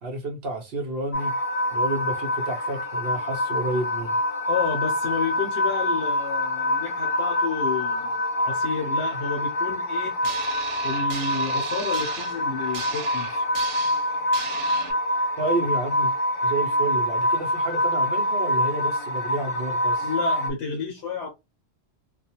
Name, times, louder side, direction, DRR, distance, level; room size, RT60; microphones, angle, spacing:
voice 1, 0.0-1.3 1.7-4.2 15.4-16.1 16.4-20.1, right 2 dB, 60° right, 0.8 m, -30 dB
sound 1, 1.1-20.5, left 1 dB, 40° left, 0.6 m, -26 dB
voice 2, 4.5-10.2 10.8-13.4 20.0-21.3, left 5 dB, 70° left, 0.9 m, -31 dB
sound 2, 10.2-14.9, right 7 dB, 90° right, 0.9 m, -36 dB
2.4 x 2.1 x 2.8 m
omnidirectional pair, 1.2 m